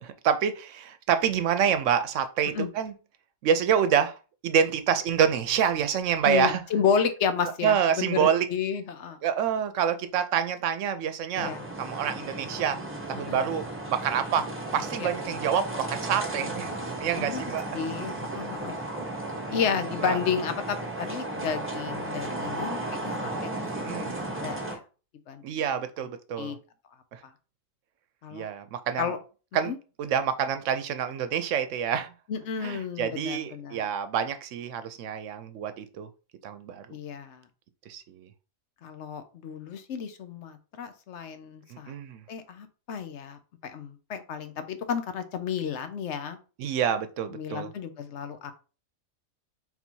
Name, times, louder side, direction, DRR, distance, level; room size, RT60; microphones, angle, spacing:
voice 1, 0.0-2.9 3.4-4.2 4.4-6.6 7.6-8.5 9.2-12.8 13.1-14.5 14.7-17.6 19.5-19.6 20.0-20.2 23.7-24.2 25.4-26.6 27.1-27.2 28.3-29.1 29.5-29.7 30.0-32.1 32.6-36.1 36.4-36.9 37.9-38.3 41.7-42.2 46.6-47.7, right 8 dB, 80° right, 0.9 m, -27 dB
voice 2, 6.2-9.2 11.4-11.6 13.2-13.4 15.0-15.1 17.2-17.4 17.7-18.8 19.5-23.5 23.8-24.8 25.3-25.6 26.4-26.6 28.2-28.5 29.0-29.2 29.7-29.8 32.3-33.8 36.9-37.4 38.8-41.9 42.3-46.4 47.3-48.5, left 7 dB, 70° left, 0.9 m, -32 dB
sound 1, 11.4-24.8, right 2 dB, 10° right, 0.8 m, -34 dB
4.0 x 2.7 x 4.4 m
omnidirectional pair, 1.3 m